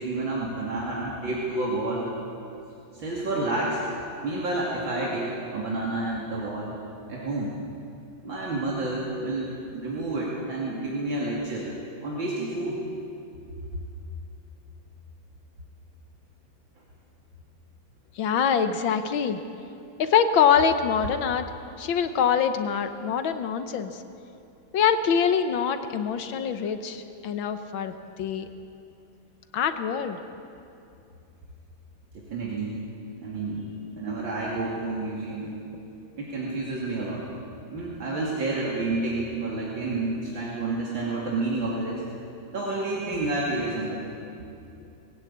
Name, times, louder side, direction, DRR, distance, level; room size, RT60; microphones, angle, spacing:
voice 1, 0.0-2.1 2.9-3.8 4.2-6.7 7.1-7.5 8.2-11.7 12.0-12.8 32.1-32.8 33.2-35.5 36.2-37.3 37.7-42.1 42.5-44.0, right 2 dB, 70° right, -5 dB, 3.3 m, -29 dB
voice 2, 18.2-19.4 20.0-21.5 21.8-24.0 24.7-28.5 29.5-30.2, left 7 dB, 75° left, 9 dB, 1.7 m, -24 dB
21.0 x 16.5 x 8.7 m, 2.7 s
omnidirectional pair, 2.2 m